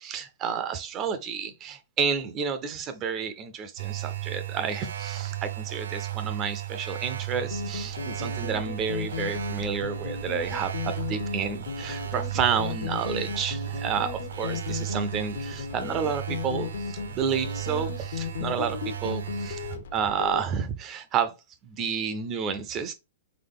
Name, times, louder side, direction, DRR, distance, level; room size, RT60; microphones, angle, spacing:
voice 1, 0.0-21.3 21.7-22.9, right 6 dB, 20° right, 0.4 m, -30 dB
sound 1, 3.8-19.8, right 13 dB, 80° right, 0.8 m, -35 dB
sound 2, 7.5-20.4, left 6 dB, 70° left, 0.8 m, -35 dB
3.9 x 3.6 x 3.5 m
hypercardioid pair, 170°, 0 cm